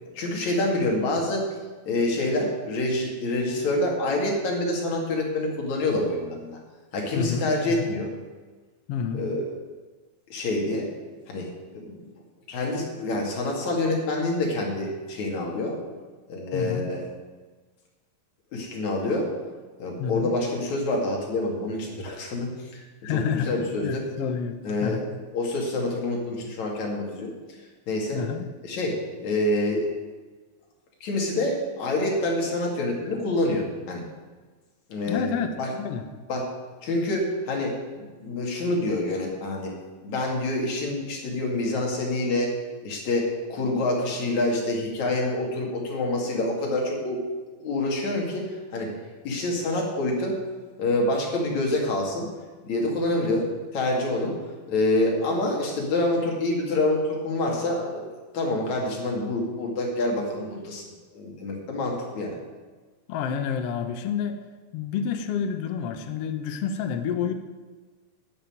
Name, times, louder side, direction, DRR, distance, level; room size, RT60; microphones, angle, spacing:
voice 1, 0.1-1.5 1.9-6.6 6.9-8.1 9.1-9.5 10.3-10.9 11.3-11.5 11.7-12.1 12.5-15.8 16.3-17.1 18.5-19.3 19.8-24.0 24.6-25.0 25.3-27.3 27.9-28.2 28.6-29.9 31.0-34.0 34.9-35.3 35.6-35.7 36.3-36.5 36.8-39.7 40.0-42.6 42.8-47.2 47.6-48.9 49.2-50.4 50.8-52.3 52.6-54.4 54.7-58.1 58.3-60.9 61.1-62.4, left 2 dB, 55° left, -1 dB, 3.5 m, -27 dB
voice 2, 7.1-7.9 8.9-9.2 16.5-16.8 20.0-20.3 23.0-23.5 23.8-24.6 24.8-25.0 28.1-28.5 35.0-36.1 63.1-64.4 64.7-67.3, left 7 dB, 90° left, 7 dB, 1.3 m, -29 dB
11.0 x 7.0 x 9.1 m, 1.4 s
omnidirectional pair, 4.1 m